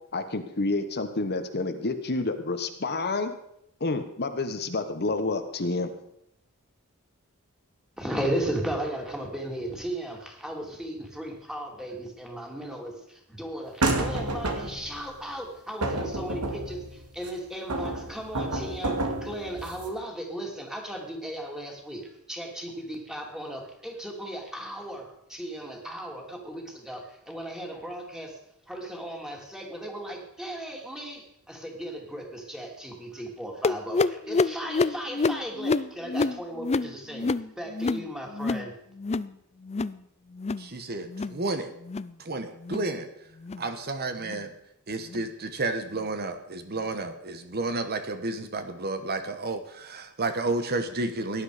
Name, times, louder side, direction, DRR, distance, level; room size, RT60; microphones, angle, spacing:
voice 1, 0.1-3.3 3.8-5.9, left 3 dB, 50° left, 8 dB, 1.2 m, -29 dB
voice 2, 8.0-28.4 28.7-38.7, right 1 dB, 5° right, 1 dB, 2.9 m, -36 dB
sound 1, 13.8-15.0 15.8-17.3 17.7-19.9, right 2 dB, 85° right, 2.3 m, -30 dB
sound 2, 33.6-38.7 38.9-39.3 39.6-40.0 40.3-40.7 41.1-41.4 41.8-42.1 42.6-42.9 43.4-43.7 44.2-44.4 45.1-45.2 45.9-46.0 46.8-46.9, left 3 dB, 30° left, 0.4 m, -28 dB
voice 3, 40.6-41.7 42.2-43.1 43.6-44.5 44.9-51.4, right 2 dB, 45° right, 8 dB, 1.2 m, -31 dB
17.5 x 10.5 x 5.1 m, 0.78 s
head